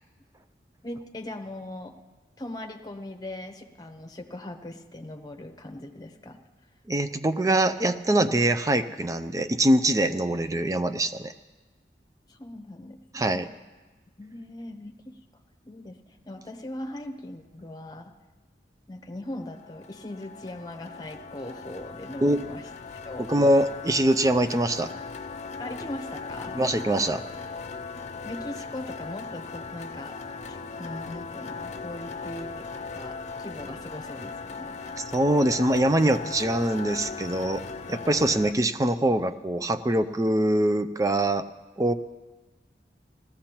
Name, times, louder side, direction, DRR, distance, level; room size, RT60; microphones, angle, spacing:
voice 1, 0.8-2.0 2.4-6.4 12.3-13.6 14.2-15.2 15.6-18.2 18.9-23.3 25.6-26.6 28.2-30.2 30.5-35.0, left 1 dB, 20° left, 4 dB, 0.9 m, -40 dB
voice 2, 6.9-11.3 13.1-13.5 22.2-22.4 23.3-24.9 26.6-27.2 35.0-37.6 37.9-41.4 41.8-41.9, right 1 dB, 20° right, 11 dB, 0.4 m, -23 dB
sound 1, 19.5-38.5, left 4 dB, 40° left, 0.5 m, -38 dB
19.0 x 14.0 x 3.0 m, 1.2 s
head